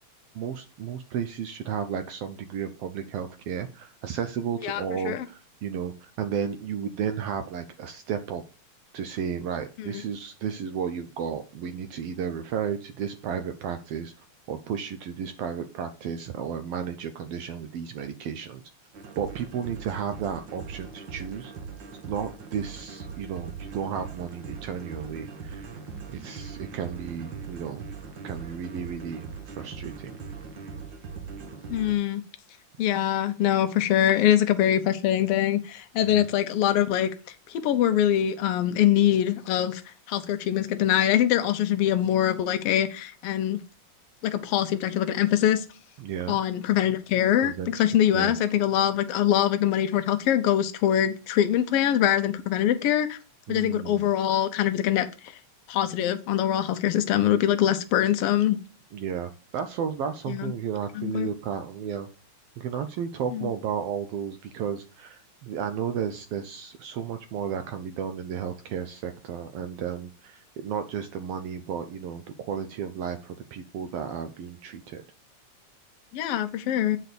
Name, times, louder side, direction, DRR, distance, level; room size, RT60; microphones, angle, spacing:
voice 1, 0.3-8.4 8.9-14.1 14.5-18.6 19.2-21.5 22.1-25.7 26.1-27.8 28.2-30.1 36.1-36.3 46.0-46.4 47.4-47.7 48.1-48.3 53.5-54.1 58.9-62.1 62.6-75.0, right 7 dB, 85° right, 1.3 m, -33 dB
voice 2, 4.6-5.2 9.8-10.0 31.7-32.2 32.8-37.1 37.5-39.8 40.1-43.6 44.2-45.6 46.3-53.2 53.5-55.1 55.7-58.6 60.3-60.5 60.9-61.3 63.3-63.5 76.1-77.0, left 11 dB, 75° left, 1.4 m, -23 dB
sound 1, 18.9-32.0, right 5 dB, 65° right, 1.1 m, -41 dB
8.1 x 4.3 x 6.7 m
omnidirectional pair, 3.5 m